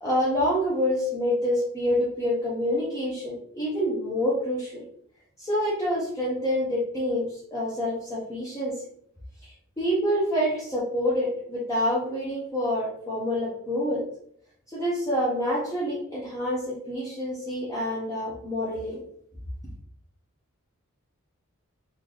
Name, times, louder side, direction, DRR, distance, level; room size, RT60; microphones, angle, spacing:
voice 1, 0.0-4.8 5.4-8.8 9.4-14.1 14.7-19.0, equal, 15° left, -8 dB, 0.8 m, -27 dB
3.2 x 2.6 x 3.9 m, 0.67 s
head